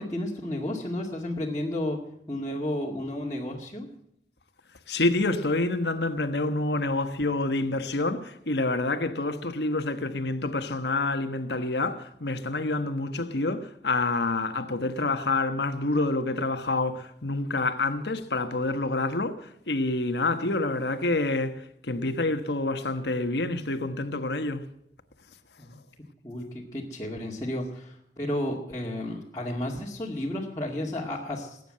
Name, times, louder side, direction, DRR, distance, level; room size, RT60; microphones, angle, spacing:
voice 1, 0.0-2.0 2.3-3.9 25.6-25.8 26.2-31.6, left 1 dB, 20° left, 2.2 m, -32 dB
voice 2, 4.9-24.6, left 2 dB, 70° left, 1.3 m, -27 dB
20.0 x 9.3 x 7.7 m
head